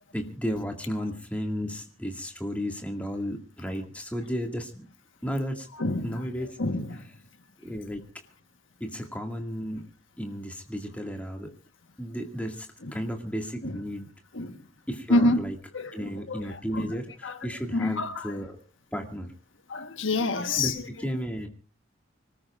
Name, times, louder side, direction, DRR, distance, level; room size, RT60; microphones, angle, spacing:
voice 1, 0.1-4.9 5.2-5.7 6.0-6.6 7.6-8.0 8.8-9.9 10.2-11.5 12.0-14.1 14.9-15.6 15.9-18.6 18.9-19.3 20.6-21.5, equal, 5° left, 2.0 m, -33 dB
voice 2, 5.8-6.2 6.6-7.0 12.8-12.9 13.6-13.7 14.3-14.6 15.1-15.4 15.7-16.9 17.2-17.4 17.7-18.3 19.7-20.8, left 2 dB, 70° left, 1.3 m, -27 dB
25.5 x 19.0 x 2.5 m
head